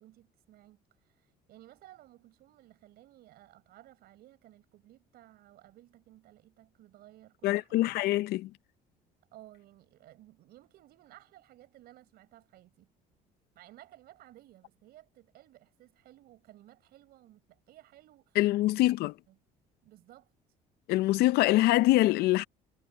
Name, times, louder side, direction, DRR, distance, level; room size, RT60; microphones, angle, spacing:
voice 1, 0.0-8.0 9.3-12.9 13.5-18.4 18.8-18.9 19.3-19.4 19.8-20.3, right 15 dB, 70° right, 5.1 m, -57 dB
voice 2, 7.4-8.5 18.4-19.1 20.9-22.4, left 17 dB, 75° left, 0.6 m, -24 dB
supercardioid pair, 95°, 17 cm